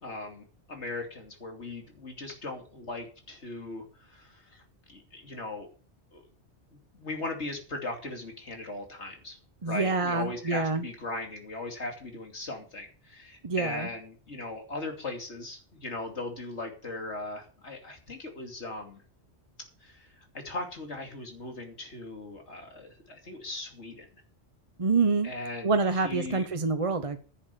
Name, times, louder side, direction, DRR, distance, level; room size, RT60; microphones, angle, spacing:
voice 1, 0.0-5.7 6.1-6.2 6.7-9.4 9.7-19.0 19.8-20.1 20.3-24.1 25.2-26.5, left 2 dB, 70° left, 3 dB, 3.1 m, -38 dB
voice 2, 9.6-10.8 13.4-13.9 24.8-25.3 25.6-27.2, right 4 dB, 30° right, 8 dB, 0.9 m, -26 dB
10.5 x 7.4 x 6.9 m, 0.40 s
omnidirectional pair, 1.2 m